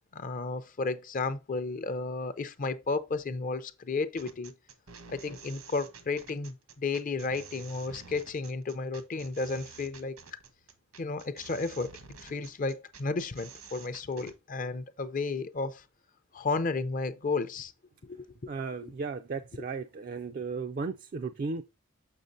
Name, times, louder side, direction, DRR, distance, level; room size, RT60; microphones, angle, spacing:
voice 1, 0.1-4.5 5.1-10.4 11.0-11.9 12.2-15.8 16.3-17.7 18.0-18.5, left 3 dB, 40° left, 0.5 m, -33 dB
sound 1, 4.2-14.4, right 6 dB, 85° right, 1.2 m, -50 dB
voice 2, 18.5-21.6, right 4 dB, 40° right, 0.3 m, -35 dB
6.4 x 6.4 x 2.6 m
head